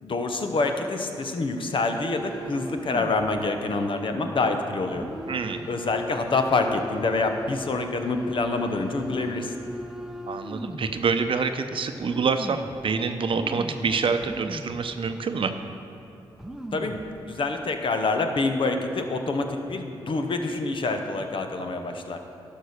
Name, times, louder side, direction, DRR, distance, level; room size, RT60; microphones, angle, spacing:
voice 1, 0.0-5.0 5.7-9.5 16.7-17.0 17.3-22.2, left 3 dB, 55° left, 5 dB, 1.0 m, -26 dB
sound 1, 2.0-3.3 3.7-3.8 4.9-11.0 11.6-11.7 12.0-12.8 13.3-14.9 15.2-15.3 16.0-16.1 16.3-17.1 17.6-17.9, equal, 5° right, 0.8 m, -38 dB
voice 2, 5.3-5.7 10.3-15.5, right 5 dB, 60° right, 8 dB, 0.7 m, -26 dB
11.5 x 5.5 x 6.5 m, 2.7 s
cardioid pair, 55°, 10 cm